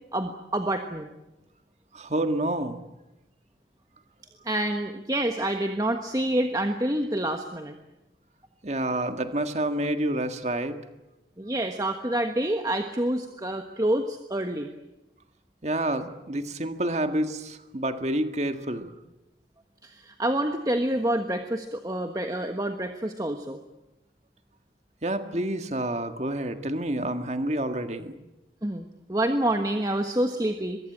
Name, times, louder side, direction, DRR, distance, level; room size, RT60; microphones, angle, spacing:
voice 1, 0.1-1.1 4.4-7.7 11.4-14.7 19.8-23.6 28.6-30.8, right 1 dB, 20° right, 5 dB, 1.3 m, -27 dB
voice 2, 1.9-2.8 8.6-10.8 15.6-18.9 25.0-28.2, right 1 dB, 40° right, 7 dB, 1.8 m, -28 dB
23.0 x 22.5 x 8.8 m, 0.98 s
head